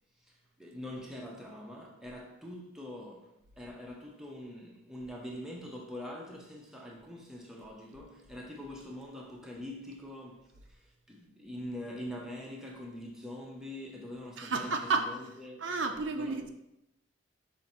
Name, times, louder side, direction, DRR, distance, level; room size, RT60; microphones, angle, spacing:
voice 1, 0.2-15.7 16.1-16.5, left 1 dB, ahead, 0.5 m, -44 dB
voice 2, 14.4-15.0 15.6-16.5, right 4 dB, 60° right, 0.5 m, -31 dB
5.1 x 2.5 x 4.1 m
head